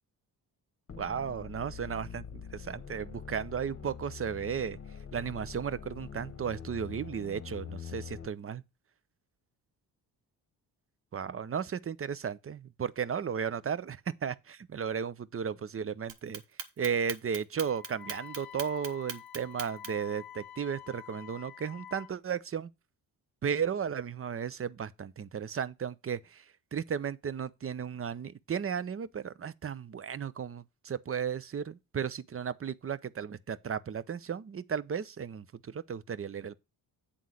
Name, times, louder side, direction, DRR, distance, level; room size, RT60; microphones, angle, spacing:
Dirty Portamento Bass, 0.9-8.3, left 7 dB, 35° left, 1.1 m, -44 dB
voice 1, 1.0-4.8 5.1-8.6 11.1-16.4 16.8-22.7 23.4-26.4 26.7-36.5, right 7 dB, 30° right, 0.6 m, -35 dB
Clock, 16.1-20.1, right 8 dB, 75° right, 1.1 m, -40 dB
Wind instrument woodwind instrument, 17.6-22.2, left 10 dB, 60° left, 0.8 m, -48 dB
8.4 x 3.7 x 6.2 m
supercardioid pair, 45°, 45 cm